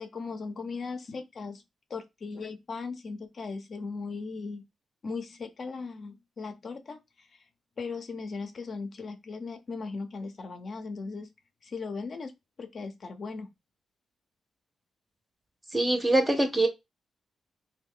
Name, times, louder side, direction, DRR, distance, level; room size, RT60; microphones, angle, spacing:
voice 1, 0.0-1.6 1.9-4.6 5.0-7.0 7.8-11.3 11.6-12.3 12.6-13.5, left 4 dB, 45° left, 0.5 m, -38 dB
voice 2, 15.7-16.7, right 2 dB, 15° right, 0.7 m, -23 dB
3.1 x 2.2 x 3.6 m
cardioid pair, 125°, 0 cm